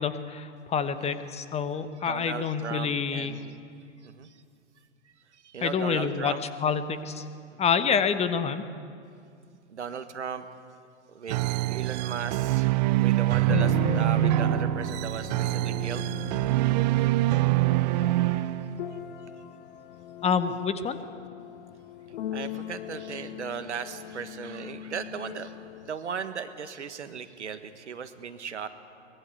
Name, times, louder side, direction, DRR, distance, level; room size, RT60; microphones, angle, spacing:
voice 1, 0.0-3.3 5.6-6.3 6.6-7.2 7.6-8.6 20.2-21.0, left 6 dB, 15° left, 11 dB, 1.1 m, -27 dB
voice 2, 2.0-3.6 4.0-4.3 5.4-6.4 9.7-10.5 11.1-12.7 13.0-16.1 22.3-25.5 25.8-28.7, right 7 dB, 70° right, 10 dB, 1.6 m, -37 dB
sound 1, 11.3-19.0, right 16 dB, 35° right, 0.6 m, -25 dB
sound 2, 13.4-26.0, left 10 dB, 50° left, 1.3 m, -38 dB
23.5 x 20.5 x 8.2 m, 2.3 s
figure-of-eight pair, 100°, 36 cm